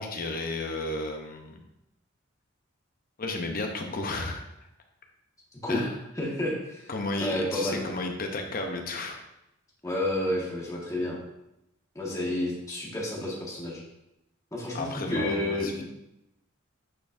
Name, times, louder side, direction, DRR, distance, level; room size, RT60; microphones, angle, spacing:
voice 1, 0.0-1.6 3.2-4.4 5.7-6.0 6.9-9.2 14.7-15.7, left 2 dB, 40° left, 3 dB, 0.8 m, -33 dB
voice 2, 6.1-6.9 7.2-7.8 9.8-11.2 11.9-13.8 14.5-15.8, left 1 dB, 15° left, -4 dB, 1.5 m, -30 dB
8.5 x 4.3 x 2.6 m, 0.86 s
head